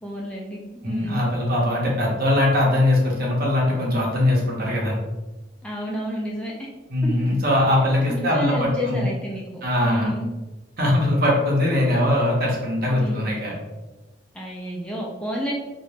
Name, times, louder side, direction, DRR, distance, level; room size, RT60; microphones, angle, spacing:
voice 1, 0.0-1.3 5.6-6.7 8.1-10.3 13.0-13.3 14.3-15.5, equal, 5° left, -3 dB, 0.3 m, -30 dB
voice 2, 0.8-4.9 6.9-9.0 9.6-10.1 10.8-13.5, left 1 dB, 55° right, -3 dB, 0.8 m, -21 dB
2.5 x 2.1 x 3.1 m, 1.1 s
head